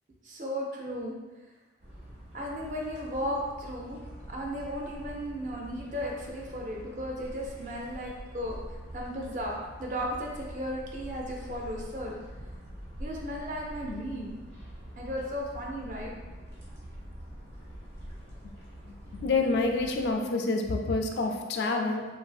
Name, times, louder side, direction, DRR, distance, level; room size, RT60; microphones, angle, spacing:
voice 1, 0.2-1.1 2.3-4.0 4.3-8.6 8.9-12.1 13.0-14.3 15.0-16.1, equal, 45° right, -1 dB, 0.5 m, -35 dB
sound 1, 1.8-20.2, equal, 85° right, 1.0 m, -45 dB
voice 2, 18.8-22.1, left 3 dB, 65° left, 3 dB, 0.3 m, -28 dB
3.1 x 2.6 x 2.3 m, 1.2 s
head